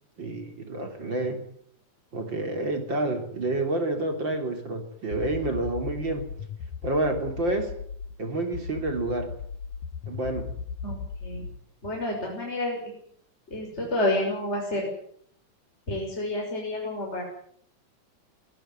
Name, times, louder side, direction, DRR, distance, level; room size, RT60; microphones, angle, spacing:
voice 1, 0.2-1.4 2.1-6.3 6.8-7.7 8.2-9.3 10.1-10.5, right 2 dB, 35° right, 6 dB, 3.7 m, -29 dB
sound 1, 5.1-8.1 8.5-11.6, left 5 dB, 70° left, 2.8 m, -36 dB
voice 2, 10.8-11.4 11.8-12.9 13.5-14.9 15.9-17.2, left 1 dB, 20° left, -1 dB, 6.5 m, -29 dB
23.5 x 17.0 x 9.7 m, 0.66 s
omnidirectional pair, 3.6 m